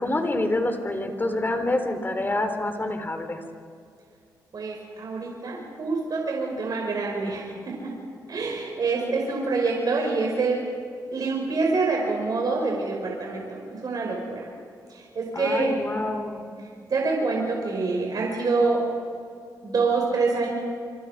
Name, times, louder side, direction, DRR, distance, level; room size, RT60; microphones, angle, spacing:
voice 1, 0.0-3.4 15.3-16.4, left 2 dB, 25° left, 7 dB, 3.7 m, -27 dB
voice 2, 4.5-7.9 8.3-10.6 11.1-14.5 15.0-15.7 16.9-18.8 19.6-20.5, right 3 dB, 55° right, -1 dB, 5.2 m, -26 dB
28.0 x 25.5 x 5.0 m, 2.4 s
supercardioid pair, 55°, 8 cm